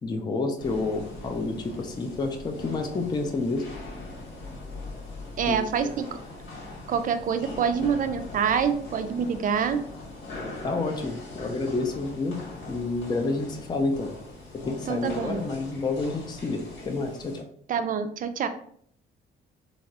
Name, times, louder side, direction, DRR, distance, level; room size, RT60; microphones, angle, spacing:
voice 1, 0.0-3.7 5.5-5.9 10.6-12.4 12.7-14.1 14.7-17.4, left 3 dB, 20° left, 3 dB, 0.4 m, -29 dB
sound 1, 0.6-17.4, left 2 dB, 80° left, 1.1 m, -41 dB
voice 2, 5.4-6.1 6.9-9.8 14.9-15.4 17.7-18.5, right 7 dB, 45° right, 9 dB, 0.4 m, -26 dB
3.3 x 2.0 x 2.7 m, 0.63 s
cardioid pair, 90°, 20 cm